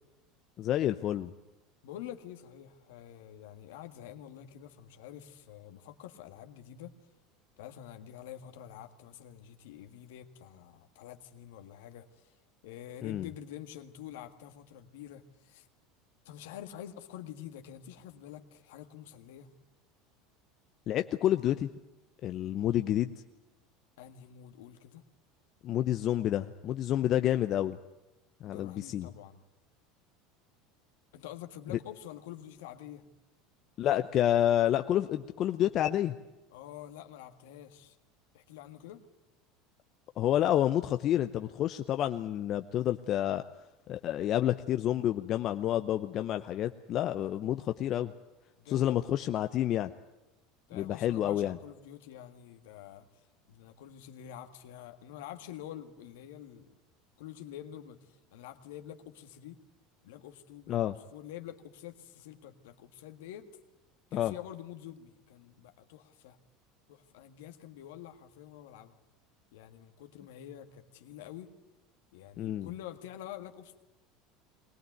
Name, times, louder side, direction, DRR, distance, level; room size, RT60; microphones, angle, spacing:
voice 1, 0.6-1.3 13.0-13.3 20.9-21.7 22.2-23.1 25.6-27.8 28.4-29.1 33.8-36.2 40.2-43.4 43.9-48.1 48.7-49.9 50.7-51.6 60.7-60.9 64.1-64.3 72.4-72.7, left 12 dB, 50° left, 9 dB, 0.7 m, -29 dB
voice 2, 1.8-6.9 7.6-12.4 12.6-15.7 16.3-19.5 24.0-25.0 28.4-29.4 31.1-33.0 36.5-38.0 38.3-39.0 48.6-49.0 50.7-56.7 57.2-59.6 60.0-60.8 61.1-63.5 64.1-66.4 66.9-69.0 69.5-71.5 72.1-73.8, left 11 dB, 75° left, 7 dB, 1.7 m, -47 dB
21.5 x 19.0 x 9.3 m, 1.0 s
hypercardioid pair, 85°, 0 cm